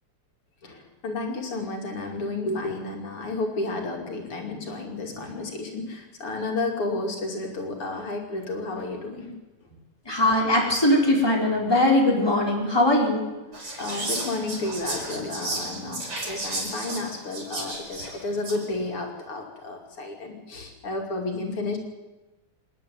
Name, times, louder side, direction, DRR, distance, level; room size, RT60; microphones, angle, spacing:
voice 1, 0.6-9.3 10.1-10.2 13.5-21.8, left 2 dB, 80° left, 2 dB, 3.5 m, -32 dB
voice 2, 10.1-13.2, left 1 dB, 10° left, -1 dB, 4.5 m, -20 dB
Whispering, 13.5-18.7, right 2 dB, 90° right, 5.8 m, -34 dB
26.5 x 10.5 x 9.4 m, 1.1 s
omnidirectional pair, 2.4 m